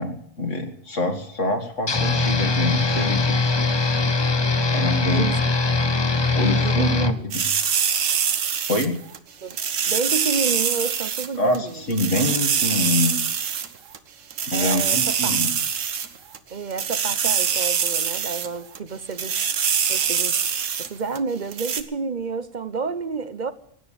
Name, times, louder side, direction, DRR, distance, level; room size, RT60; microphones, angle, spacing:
voice 1, 0.0-3.5 4.7-5.3 6.3-7.5 8.7-9.0 11.4-13.2 14.5-15.5, left 1 dB, 65° left, 4 dB, 2.4 m, -25 dB
sound 1, 1.9-7.1, left 3 dB, 25° left, 0.6 m, -21 dB
voice 2, 6.6-7.3 9.4-9.6 9.9-11.8 14.5-15.4 16.5-19.4 19.9-20.5 20.8-23.5, right 4 dB, 40° right, 13 dB, 0.8 m, -30 dB
sound 2, 7.3-9.2 9.5-11.3 11.5-11.6 11.9-13.7 13.9-14.0 14.3-16.4 16.7-18.5 18.8-18.9 19.1-20.9 21.2-21.3 21.5-21.8, right 7 dB, 70° right, 1.4 m, -24 dB
16.0 x 9.4 x 8.6 m, 0.70 s
omnidirectional pair, 1.4 m